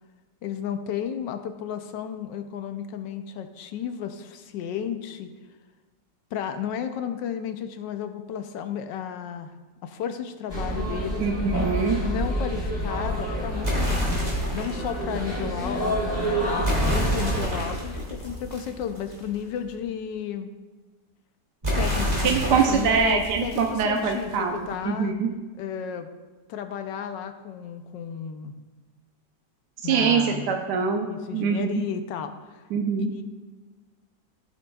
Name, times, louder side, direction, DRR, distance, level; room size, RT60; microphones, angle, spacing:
voice 1, 0.4-5.3 6.3-9.6 9.8-11.2 12.0-20.5 21.7-25.1 25.6-26.1 26.5-28.5 29.8-30.7 31.1-32.7 33.1-33.2, left 8 dB, 85° left, 8 dB, 1.3 m, -33 dB
sound 1, 10.5-17.4, right 1 dB, 15° left, 2.8 m, -28 dB
voice 2, 11.2-12.0 22.2-24.5 24.8-25.3 29.8-31.8 32.7-33.1, right 6 dB, 75° right, 3 dB, 1.2 m, -24 dB
sound 2, 13.6-14.9 16.6-19.4 21.6-24.4, equal, 20° right, 2.3 m, -28 dB
14.5 x 7.9 x 2.3 m, 1.3 s
omnidirectional pair, 1.9 m